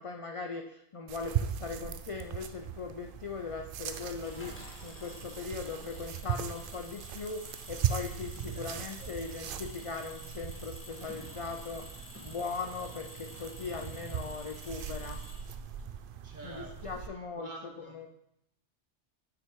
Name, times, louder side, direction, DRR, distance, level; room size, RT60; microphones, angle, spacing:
voice 1, 0.0-11.9 12.2-15.2 16.4-18.1, left 4 dB, 55° left, 3 dB, 0.3 m, -39 dB
sound 1, 1.1-17.1, right 9 dB, 60° right, 0.6 m, -39 dB
Engine, 4.2-15.8, left 1 dB, 10° left, 1.2 m, -50 dB
voice 2, 8.5-9.2 16.2-16.9 17.4-17.9, right 2 dB, 40° right, 1 dB, 1.4 m, -48 dB
6.3 x 6.0 x 4.6 m, 0.78 s
omnidirectional pair, 1.2 m